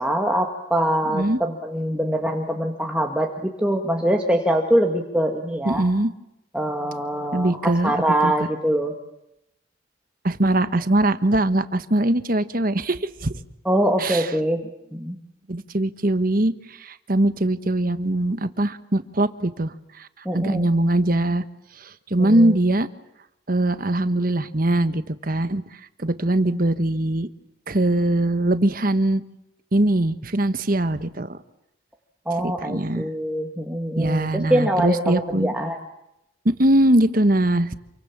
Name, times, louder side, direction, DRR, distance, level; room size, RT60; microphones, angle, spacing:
voice 1, 0.0-5.9 6.5-9.0 13.7-14.6 14.9-15.2 20.3-20.7 22.2-22.5 32.3-35.8, right 1 dB, 5° right, 1 dB, 1.9 m, -23 dB
voice 2, 5.6-6.1 7.3-7.9 8.2-8.3 10.2-13.3 14.0-14.3 15.5-20.1 20.3-21.4 21.8-22.9 23.5-25.6 26.0-27.3 27.7-29.2 29.7-31.4 32.4-33.1 34.0-35.5 36.4-37.7, right 1 dB, 45° right, 11 dB, 1.3 m, -21 dB
28.0 x 24.0 x 7.4 m, 0.85 s
head